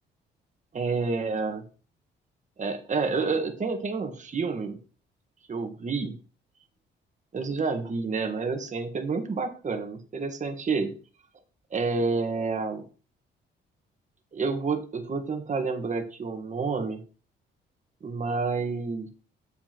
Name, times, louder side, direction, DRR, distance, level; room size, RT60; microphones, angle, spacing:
voice 1, 0.7-1.6 2.6-4.8 5.5-6.2 7.3-10.9 11.7-12.8 14.3-17.0 18.0-19.1, right 4 dB, 40° right, 6 dB, 1.5 m, -29 dB
7.6 x 7.3 x 3.0 m, 0.38 s
cardioid pair, 90°, 20 cm